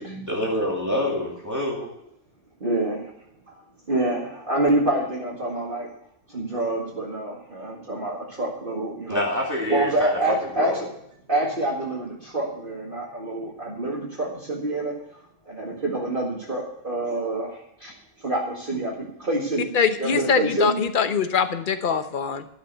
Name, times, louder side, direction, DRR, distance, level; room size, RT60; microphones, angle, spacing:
voice 1, 0.3-1.9 9.1-10.8, left 1 dB, 15° right, -3 dB, 2.3 m, -27 dB
voice 2, 2.6-3.1 3.5-3.6 3.9-5.9 6.3-9.3 9.7-10.9 11.3-19.7 20.0-20.8, right 1 dB, 40° right, -3 dB, 2.1 m, -27 dB
voice 3, 19.7-22.4, left 6 dB, 45° left, 9 dB, 1.0 m, -23 dB
12.5 x 6.4 x 8.1 m, 0.75 s
omnidirectional pair, 1.3 m